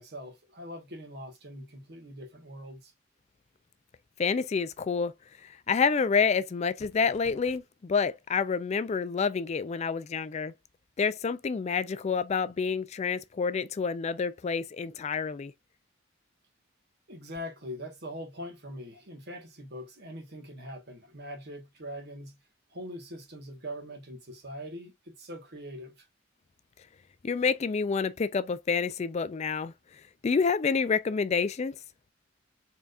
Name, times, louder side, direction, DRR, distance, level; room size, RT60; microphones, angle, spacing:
voice 1, 0.0-2.9 17.1-22.4 22.7-26.0, equal, 55° right, 1.5 m, -42 dB
voice 2, 4.2-5.1 5.7-10.5 11.0-15.5 27.2-29.7 30.2-31.8, left 5 dB, 35° left, 0.3 m, -28 dB
sound 1, 6.8-7.6, left 2 dB, 55° left, 0.7 m, -52 dB
4.4 x 3.5 x 2.5 m
head